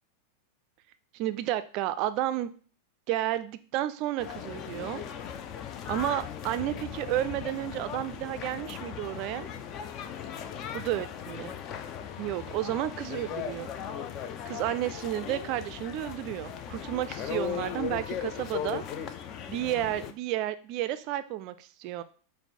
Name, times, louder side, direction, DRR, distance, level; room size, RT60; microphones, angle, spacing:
voice 1, 1.1-2.5 3.1-5.1 5.9-9.5 10.7-11.6 12.2-13.7 14.4-18.8 19.5-22.0, right 13 dB, 40° right, 12 dB, 0.3 m, -32 dB
sound 1, 4.2-20.1, left 8 dB, 35° left, 0.4 m, -38 dB
5.0 x 2.0 x 4.4 m, 0.42 s
figure-of-eight pair, 90°, 0 cm